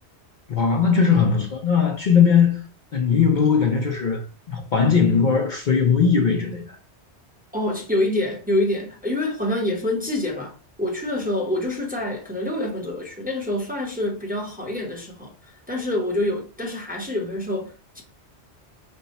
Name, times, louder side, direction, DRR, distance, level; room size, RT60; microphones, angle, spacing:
voice 1, 0.5-2.6 2.9-6.7, left 6 dB, 50° left, 0.7 m, -19 dB
voice 2, 7.5-18.0, left 1 dB, 10° right, 0.8 m, -26 dB
5.4 x 2.2 x 4.0 m
omnidirectional pair, 1.1 m